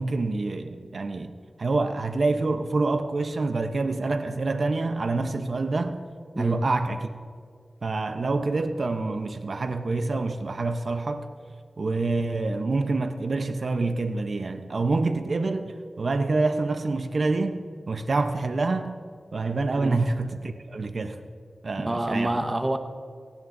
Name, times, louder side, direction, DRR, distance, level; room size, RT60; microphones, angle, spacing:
voice 1, 0.0-1.3 1.6-6.0 6.4-7.1 7.8-11.3 11.8-19.0 19.3-21.2 21.6-22.4, right 3 dB, 65° right, 8 dB, 0.7 m, -27 dB
voice 2, 21.8-22.8, right 1 dB, 25° right, 7 dB, 1.0 m, -27 dB
18.0 x 16.0 x 2.6 m, 2.1 s
cardioid pair, 50°, 0 cm